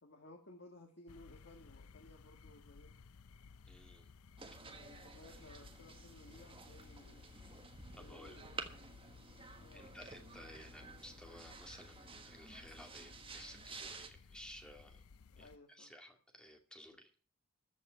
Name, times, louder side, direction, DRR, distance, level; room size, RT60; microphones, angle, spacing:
voice 1, 0.0-3.0 4.7-7.3 7.9-8.6 9.5-9.9 15.3-15.9, left 2 dB, 50° left, 1 dB, 1.9 m, -59 dB
sound 1, 1.1-15.6, left 5 dB, 80° left, 0.6 m, -58 dB
voice 2, 3.7-4.1 8.0-8.4 9.7-15.0 15.4-17.1, equal, 5° left, 3 dB, 2.3 m, -55 dB
sound 2, 4.4-14.1, right 4 dB, 25° right, 1.5 m, -52 dB
14.5 x 5.4 x 9.3 m, 0.40 s
head